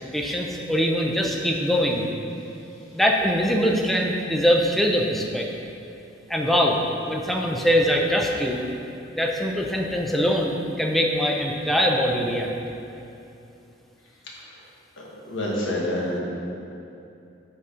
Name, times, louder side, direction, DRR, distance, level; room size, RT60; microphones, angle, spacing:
voice 1, 0.1-2.1 2.9-5.5 6.3-8.6 9.2-12.5, equal, ahead, 0 dB, 0.5 m, -22 dB
voice 2, 15.0-16.2, left 1 dB, 80° left, -4 dB, 1.5 m, -28 dB
8.0 x 4.0 x 5.0 m, 2.7 s
head